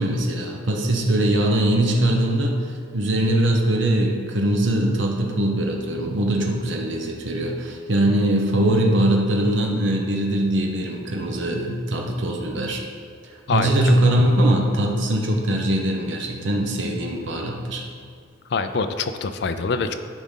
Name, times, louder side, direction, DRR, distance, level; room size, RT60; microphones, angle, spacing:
voice 1, 0.0-12.8 13.5-17.8, right 1 dB, 65° right, 1 dB, 0.9 m, -21 dB
voice 2, 18.5-19.9, left 4 dB, 55° left, 8 dB, 0.4 m, -24 dB
10.0 x 3.6 x 5.6 m, 2.2 s
head